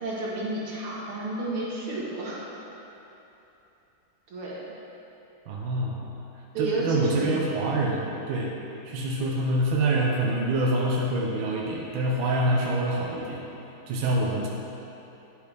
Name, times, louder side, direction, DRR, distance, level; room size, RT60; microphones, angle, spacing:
voice 1, 0.0-2.4 4.3-4.7 6.5-7.4, right 1 dB, 90° right, -6 dB, 2.4 m, -31 dB
voice 2, 5.5-6.0 6.6-8.6 8.8-13.5 13.9-14.5, right 1 dB, 75° right, -2 dB, 1.5 m, -26 dB
9.7 x 8.1 x 3.4 m, 3.0 s
omnidirectional pair, 2.3 m